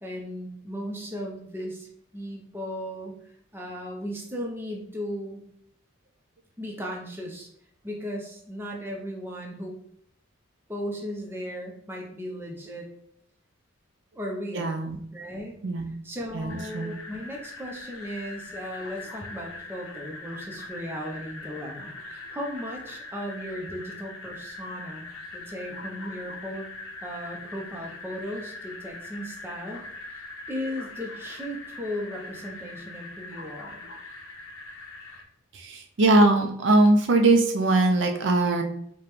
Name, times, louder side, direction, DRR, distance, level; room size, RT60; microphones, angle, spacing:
voice 1, 0.0-5.4 6.6-7.5 7.8-9.8 10.7-12.9 14.1-14.8 15.1-15.6 16.0-26.7 27.0-29.8 30.1-33.8, equal, 10° right, -1 dB, 0.5 m, -36 dB
voice 2, 14.5-15.0 15.6-15.9 16.3-16.9 35.5-38.6, right 2 dB, 60° right, 4 dB, 0.4 m, -21 dB
sound 1, 16.5-35.2, left 2 dB, 85° left, 0.7 m, -42 dB
4.9 x 2.2 x 3.0 m, 0.69 s
head